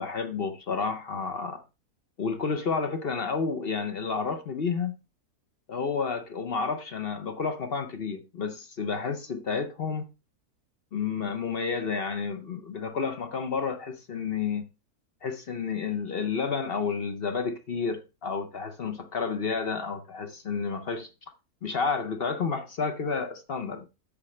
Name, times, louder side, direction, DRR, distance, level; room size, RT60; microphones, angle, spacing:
voice 1, 0.0-1.6 2.2-4.9 5.7-10.1 10.9-14.6 15.2-21.1 21.6-23.9, left 5 dB, 50° left, 0.8 m, -30 dB
9.9 x 7.4 x 3.2 m
omnidirectional pair, 1.6 m